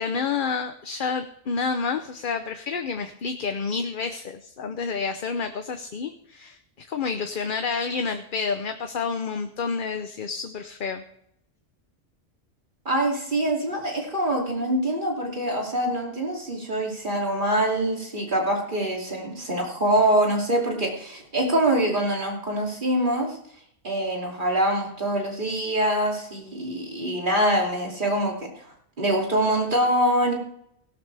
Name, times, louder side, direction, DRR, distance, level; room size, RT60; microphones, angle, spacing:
voice 1, 0.0-11.0, left 5 dB, 50° left, 7 dB, 0.9 m, -29 dB
voice 2, 12.8-23.4 23.8-28.5 29.0-30.3, right 1 dB, 45° right, -1 dB, 3.0 m, -24 dB
17.5 x 12.0 x 3.4 m, 0.72 s
omnidirectional pair, 1.2 m